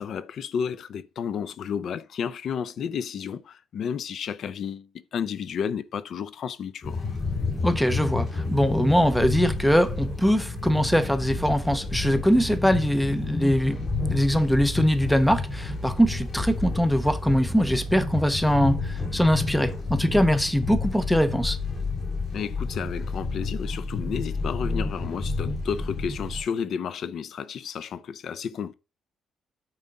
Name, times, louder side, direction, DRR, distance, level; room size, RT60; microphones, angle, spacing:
voice 1, 0.0-7.0 22.3-28.7, left 7 dB, 50° left, 0.5 m, -32 dB
sound 1, 6.8-26.4, left 3 dB, 25° left, 5.0 m, -30 dB
voice 2, 7.6-13.8 14.1-21.6, equal, ahead, 0.5 m, -22 dB
8.9 x 3.7 x 5.4 m
cardioid pair, 175°, 0 cm